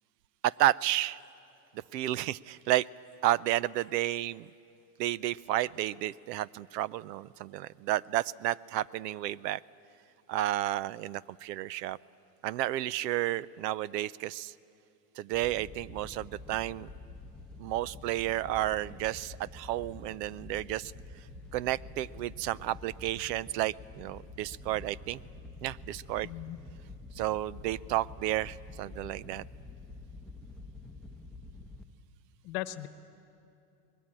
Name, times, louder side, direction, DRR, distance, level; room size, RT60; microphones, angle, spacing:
voice 1, 0.4-1.2 1.9-2.9 3.2-4.5 5.0-9.6 10.3-12.0 12.4-14.5 15.2-16.9 17.6-20.9 21.5-25.2 25.6-26.3 27.2-29.4, right 14 dB, 80° right, 22 dB, 0.7 m, -31 dB
Wind / Boat Water vehicle, 15.3-31.8, left 2 dB, ahead, 0.8 m, -48 dB
voice 2, 26.2-26.6 32.4-32.9, left 16 dB, 45° left, 12 dB, 1.1 m, -37 dB
24.5 x 20.5 x 8.9 m, 2.7 s
supercardioid pair, 145°, 48 cm